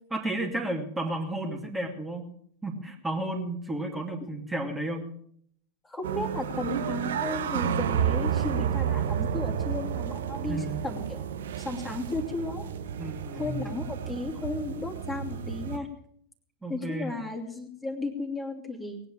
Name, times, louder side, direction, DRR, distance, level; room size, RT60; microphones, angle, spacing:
voice 1, 0.1-2.3 2.6-5.1 10.5-10.8 13.0-13.6 16.6-17.1, right 1 dB, 10° right, 1 dB, 2.5 m, -32 dB
voice 2, 5.8-11.2 11.6-12.7 13.3-15.9 16.7-19.0, left 2 dB, 10° left, 2 dB, 2.8 m, -34 dB
sound 1, 6.0-15.8, right 8 dB, 60° right, 1.2 m, -31 dB
19.5 x 9.4 x 7.5 m, 0.65 s
figure-of-eight pair, 90°, 0 cm